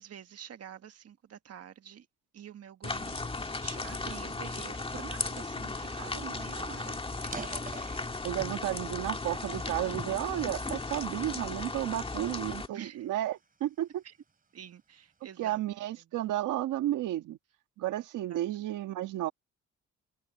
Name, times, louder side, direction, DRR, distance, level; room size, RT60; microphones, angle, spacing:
voice 1, 0.0-2.1 2.3-3.2 3.6-7.0 12.7-13.1 14.0-14.1 14.5-15.6 18.3-18.4, right 9 dB, 55° right, 1.6 m, -47 dB
sound 1, 2.8-12.7, left 3 dB, 20° left, 2.1 m, -36 dB
sound 2, 7.2-8.7 9.2-10.5 11.1-11.4 12.0-14.0, right 4 dB, 30° right, 3.5 m, -46 dB
voice 2, 8.2-14.0 15.4-17.4 17.8-19.3, right 14 dB, 85° right, 1.6 m, -32 dB
cardioid pair, 90°, 30 cm